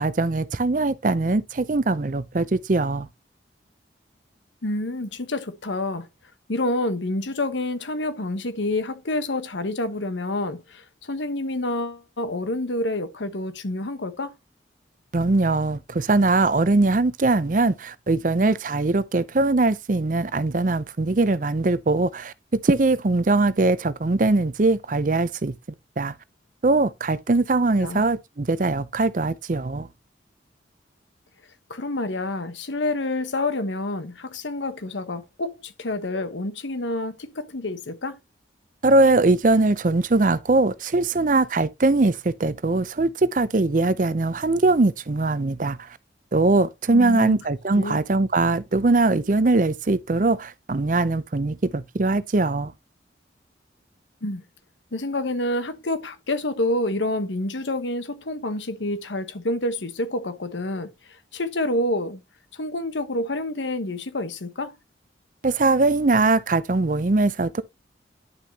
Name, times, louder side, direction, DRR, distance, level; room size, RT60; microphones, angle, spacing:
voice 1, 0.0-3.1 15.1-22.3 22.6-25.5 26.0-26.1 26.6-29.9 38.8-46.0 46.3-52.7 65.4-67.6, right 2 dB, 45° right, 0.6 m, -21 dB
voice 2, 4.6-6.1 6.5-14.4 27.8-28.0 31.7-38.2 46.9-47.4 47.7-48.0 54.2-54.4 54.9-62.2 62.5-64.8, left 2 dB, 90° left, 1.1 m, -28 dB
10.5 x 6.3 x 2.8 m
head